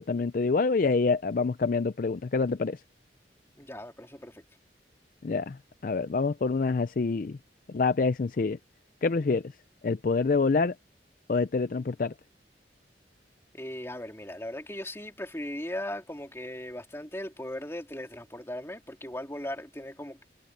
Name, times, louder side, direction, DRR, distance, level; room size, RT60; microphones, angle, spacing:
voice 1, 0.0-2.8 5.2-7.4 7.7-8.6 9.0-9.5 9.8-10.8 11.3-12.1, left 4 dB, 50° left, 0.4 m, -26 dB
voice 2, 3.6-4.4 13.5-20.2, left 1 dB, 15° left, 3.4 m, -38 dB
head